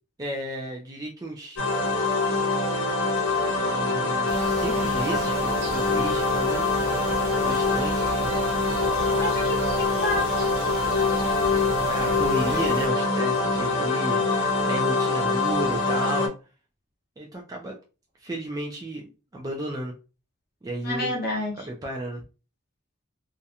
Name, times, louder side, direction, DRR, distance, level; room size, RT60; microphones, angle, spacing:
voice 1, 0.2-1.6 3.4-6.6 7.3-8.3 11.9-16.3 17.2-17.8 18.2-19.9 20.6-21.1 21.6-22.2, right 1 dB, 20° right, -1 dB, 0.3 m, -33 dB
sound 1, 1.6-16.3, left 3 dB, 80° left, 0.6 m, -24 dB
sound 2, 4.3-12.9, right 2 dB, 90° right, 0.5 m, -37 dB
voice 2, 9.2-10.5 20.8-21.6, left 1 dB, 45° left, -1 dB, 0.8 m, -30 dB
2.4 x 2.1 x 2.7 m, 0.32 s
head